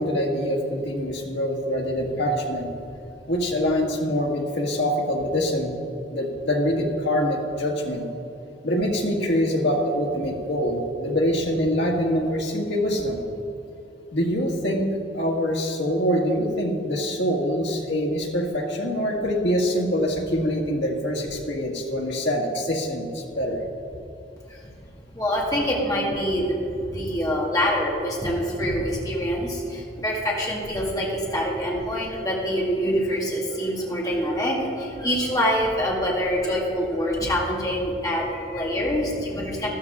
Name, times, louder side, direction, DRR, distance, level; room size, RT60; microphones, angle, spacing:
voice 1, 0.0-2.7 3.3-5.8 6.1-8.0 8.6-13.2 14.1-14.9 15.1-23.6, equal, 90° left, 0 dB, 1.8 m, -24 dB
voice 2, 25.1-39.7, equal, 20° left, -4 dB, 2.0 m, -25 dB
13.0 x 13.0 x 3.7 m, 2.8 s
head